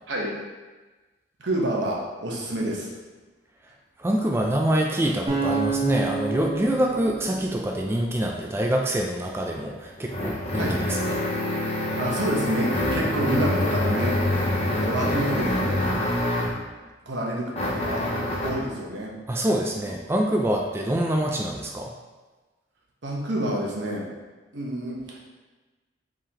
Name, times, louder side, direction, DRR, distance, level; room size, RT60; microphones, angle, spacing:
voice 1, 1.4-2.9 10.6-10.8 12.0-14.5 14.8-15.8 17.1-18.0 18.4-19.1 23.0-24.1 24.5-25.3, right 1 dB, 80° right, -3 dB, 1.0 m, -28 dB
voice 2, 4.0-11.2 19.3-21.9, right 1 dB, 15° right, 0 dB, 0.3 m, -25 dB
sound 1, 5.3-8.4, right 4 dB, 35° right, 1.3 m, -29 dB
sound 2, 9.4-16.7 17.5-18.7, left 1 dB, 35° left, 0.7 m, -26 dB
4.8 x 3.7 x 2.8 m, 1.2 s
head